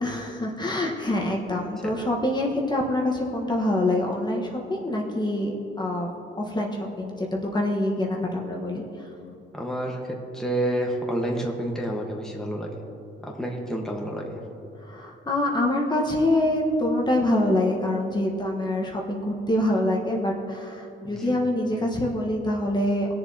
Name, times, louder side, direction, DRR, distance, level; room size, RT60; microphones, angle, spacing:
voice 1, 0.0-6.1 6.4-8.8 14.9-23.1, left 1 dB, 20° left, -1 dB, 1.3 m, -25 dB
voice 2, 9.5-12.8 13.2-14.4 21.0-21.4, right 1 dB, 5° left, -1 dB, 1.4 m, -29 dB
21.0 x 7.2 x 2.9 m, 2.8 s
cardioid pair, 90°, 20 cm